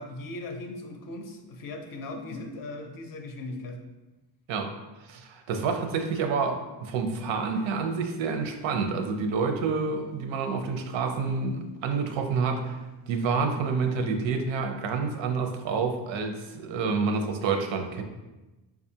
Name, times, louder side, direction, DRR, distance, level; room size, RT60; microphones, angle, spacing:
voice 1, 0.0-3.8, left 2 dB, 50° left, 3 dB, 0.5 m, -38 dB
voice 2, 5.1-12.8 13.1-18.0, right 5 dB, 90° right, 5 dB, 0.6 m, -28 dB
4.8 x 2.4 x 2.7 m, 1.1 s
cardioid pair, 160°, 44 cm